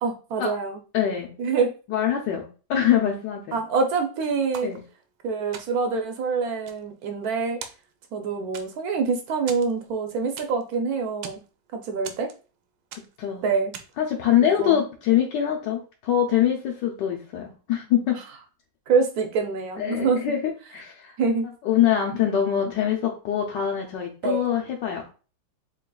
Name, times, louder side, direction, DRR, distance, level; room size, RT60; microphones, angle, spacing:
voice 1, 0.0-0.8 1.4-1.7 3.5-4.7 5.2-7.6 8.1-11.4 11.7-12.3 13.4-13.7 14.4-14.8 18.9-20.2 21.2-21.5 24.2-24.4, right 5 dB, 70° right, 4 dB, 0.9 m, -25 dB
voice 2, 0.9-1.3 1.9-3.6 4.6-4.8 13.2-13.5 14.0-18.2 19.8-21.2 21.6-25.0, left 10 dB, 70° left, -1 dB, 1.2 m, -24 dB
sound 1, 4.5-5.2 5.5-6.0 6.4-7.3 7.6-8.2 8.5-9.0 9.5-10.7 11.0-11.5 12.0-12.6 12.9-13.3 13.7-14.1, right 7 dB, 90° right, 1.4 m, -41 dB
3.9 x 3.8 x 2.3 m, 0.35 s
omnidirectional pair, 2.2 m